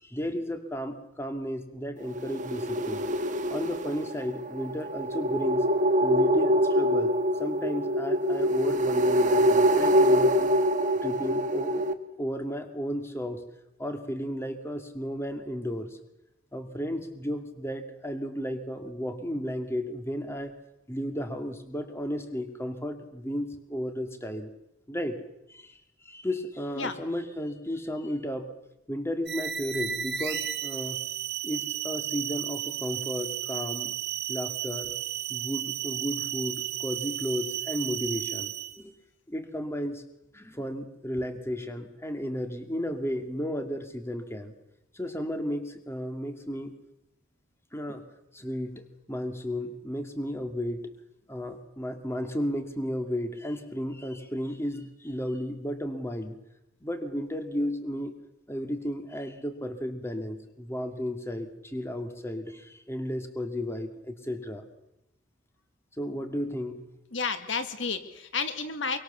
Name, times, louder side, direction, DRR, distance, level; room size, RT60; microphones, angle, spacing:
voice 1, 0.0-3.1 3.5-5.6 6.0-7.1 7.4-10.5 11.0-11.9 12.2-13.4 13.8-16.0 16.5-20.5 20.9-24.5 24.9-25.2 25.5-28.5 28.9-31.0 31.4-33.9 34.3-34.9 35.3-38.9 39.3-40.0 40.3-44.5 44.9-46.7 47.7-48.0 48.3-48.8 49.1-50.9 51.3-56.4 56.8-58.1 58.5-64.6 66.0-66.8, equal, 15° left, 7 dB, 2.5 m, -33 dB
sound 1, 2.0-11.9, equal, 40° right, 1.8 m, -25 dB
sound 2, 29.3-38.8, right 11 dB, 55° right, 2.6 m, -33 dB
voice 2, 67.1-69.0, left 5 dB, 70° left, 9 dB, 2.1 m, -31 dB
25.5 x 24.0 x 7.1 m, 0.88 s
head